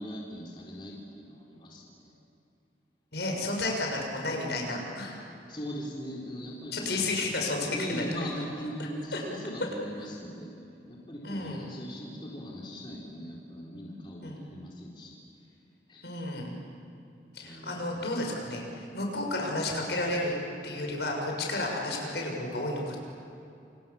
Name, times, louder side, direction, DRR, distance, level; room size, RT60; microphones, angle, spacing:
voice 1, 0.0-2.1 5.5-7.3 7.7-10.5 10.9-15.1 15.9-16.1 17.4-18.1, equal, 30° left, -3 dB, 4.3 m, -40 dB
voice 2, 3.1-5.2 6.7-8.1 9.1-9.2 11.2-11.6 14.2-14.4 16.0-16.5 17.3-20.3 20.6-23.0, left 2 dB, 75° left, 0 dB, 6.9 m, -32 dB
29.0 x 28.5 x 7.3 m, 2.7 s
head